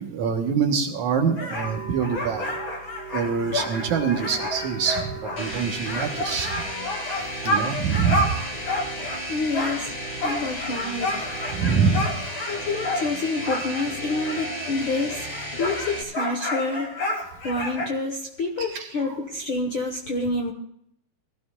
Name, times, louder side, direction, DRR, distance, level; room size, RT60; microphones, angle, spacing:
voice 1, 0.0-2.6 3.1-6.6 7.4-8.3 11.5-12.2 18.6-19.2, right 6 dB, 65° right, 3 dB, 2.3 m, -25 dB
sound 1, 1.4-9.3 9.5-14.8 15.1-17.9, left 1 dB, 40° left, 2.7 m, -30 dB
sound 2, 1.6-12.2, right 4 dB, 90° left, 7.7 m, -42 dB
sound 3, 5.4-16.0, equal, 15° left, 1.7 m, -34 dB
voice 2, 9.3-11.2 12.5-15.3 15.5-16.9 17.4-20.5, left 2 dB, 60° left, 1 dB, 1.4 m, -28 dB
22.0 x 15.0 x 2.4 m, 0.71 s
omnidirectional pair, 4.0 m